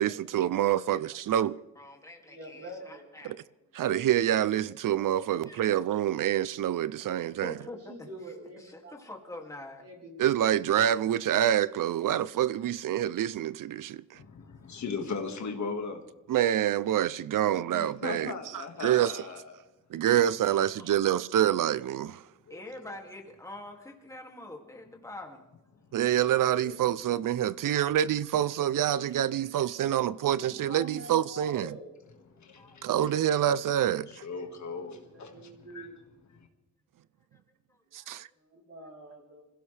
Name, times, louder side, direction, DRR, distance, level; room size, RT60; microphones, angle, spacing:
voice 1, 0.0-1.6 3.3-3.4 3.7-7.5 10.2-14.2 16.3-19.2 19.9-22.2 25.9-31.7 32.8-34.2 37.9-38.3, right 11 dB, 80° right, 0.5 m, -27 dB
voice 2, 1.4-3.3 5.5-5.7 7.2-9.8 14.3-14.4 20.5-20.9 22.5-25.5 27.5-27.8 30.0-30.1 30.8-30.9 32.3-32.9 37.3-37.4 37.7-38.1, left 2 dB, 10° left, 2.4 m, -46 dB
voice 3, 2.3-3.2 7.4-9.0 9.8-10.2 11.2-11.4 29.7-32.0 35.1-35.9 38.4-39.5, right 1 dB, 45° right, 4.0 m, -46 dB
voice 4, 14.1-16.0 17.7-19.5 22.5-23.0 26.2-26.8 32.3-32.9 34.1-35.9 36.3-36.5, left 4 dB, 65° left, 1.9 m, -39 dB
26.5 x 16.0 x 3.4 m
wide cardioid pair, 175°, 32 cm